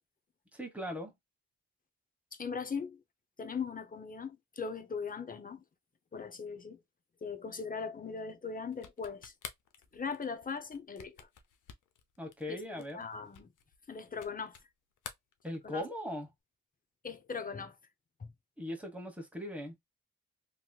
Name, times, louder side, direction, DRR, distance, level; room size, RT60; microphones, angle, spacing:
voice 1, 0.5-1.1 12.2-13.0 15.4-16.3 18.6-19.7, left 1 dB, 5° right, 1.3 m, -39 dB
voice 2, 2.3-3.0 3.4-5.6 6.1-6.8 7.2-9.3 9.9-11.3 12.5-13.5 13.9-14.6 15.6-15.8 17.0-17.8 18.2-18.3, left 5 dB, 30° left, 0.7 m, -39 dB
sound 1, 8.7-14.7 15.0-16.0, left 7 dB, 80° left, 0.7 m, -50 dB
3.1 x 3.0 x 2.3 m
cardioid pair, 95°, 30 cm